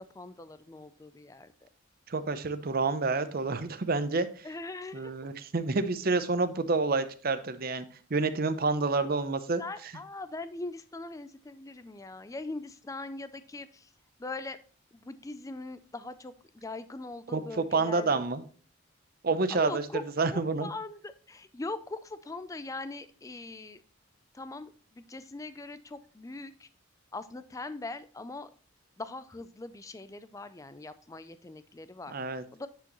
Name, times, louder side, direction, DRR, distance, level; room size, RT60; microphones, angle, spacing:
voice 1, 0.0-1.5 4.4-5.2 9.6-13.9 14.2-14.6 14.9-16.3 16.6-18.2 19.5-20.0 20.3-23.8 24.3-26.7 27.1-28.5 29.0-32.1 32.5-32.7, left 2 dB, 15° left, 12 dB, 0.4 m, -41 dB
voice 2, 2.1-4.3 4.9-9.9 17.3-18.4 19.2-20.7 32.1-32.4, right 3 dB, 45° right, 11 dB, 0.7 m, -29 dB
10.0 x 5.0 x 3.0 m, 0.42 s
head